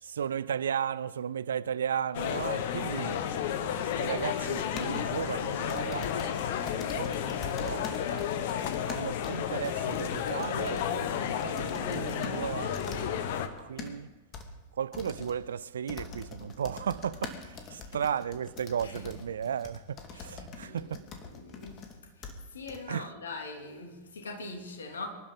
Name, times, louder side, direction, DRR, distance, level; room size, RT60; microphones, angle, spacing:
voice 1, 0.0-3.2 4.0-8.3 8.8-14.1 14.7-21.0 22.9-23.1, right 8 dB, 70° right, 0.5 m, -35 dB
sound 1, 2.1-13.5, left 9 dB, 55° left, 1.3 m, -32 dB
sound 2, 4.8-5.0 5.7-12.4 12.7-13.1 13.5-13.9 14.3-14.5 14.9-15.3 15.9-21.9 22.2-22.3 22.7-22.8, left 5 dB, 35° left, 2.3 m, -43 dB
voice 2, 20.6-21.9 22.2-25.1, left 3 dB, 70° left, 3.0 m, -43 dB
25.5 x 12.0 x 4.0 m
figure-of-eight pair, 90°, 0 cm